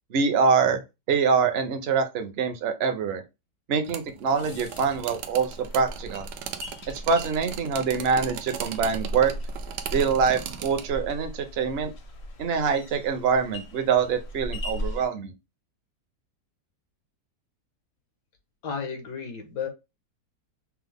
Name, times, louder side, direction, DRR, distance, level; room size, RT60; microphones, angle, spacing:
voice 1, 0.1-0.8 1.1-3.2 3.7-6.3 6.9-9.3 9.9-11.9 12.4-15.3, right 5 dB, 60° right, 0.6 m, -24 dB
sound 1, 3.8-10.9, right 9 dB, 85° right, 1.2 m, -39 dB
sound 2, 4.4-15.1, equal, 55° left, 0.7 m, -38 dB
voice 2, 18.6-19.7, left 6 dB, 80° left, 1.6 m, -33 dB
5.8 x 2.0 x 3.4 m
omnidirectional pair, 1.8 m